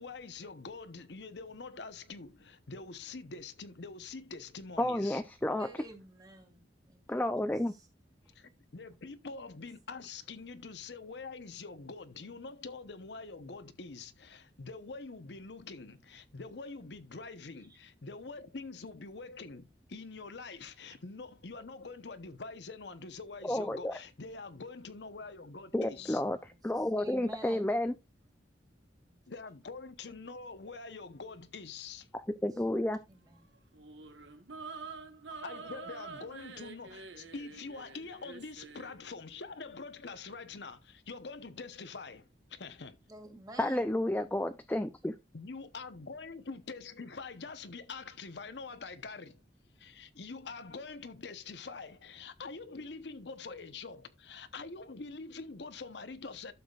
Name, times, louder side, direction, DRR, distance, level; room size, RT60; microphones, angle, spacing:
voice 1, 0.0-5.2 8.3-26.2 29.3-32.1 35.4-43.0 45.3-49.4 49.8-56.5, left 4 dB, 70° left, 0.9 m, -45 dB
voice 2, 4.8-5.7 7.1-7.7 23.4-23.9 25.7-26.4 26.6-27.9 32.4-33.0 43.6-45.1, left 1 dB, 10° left, 0.5 m, -31 dB
voice 3, 5.6-7.3 7.7-7.9 10.0-10.1 12.2-12.4 26.0-27.8 29.1-29.2 32.5-32.6 33.1-33.5 43.1-43.9, right 2 dB, 20° right, 2.3 m, -51 dB
sound 1, 33.7-39.0, right 4 dB, 90° right, 1.4 m, -47 dB
12.0 x 7.1 x 2.4 m
head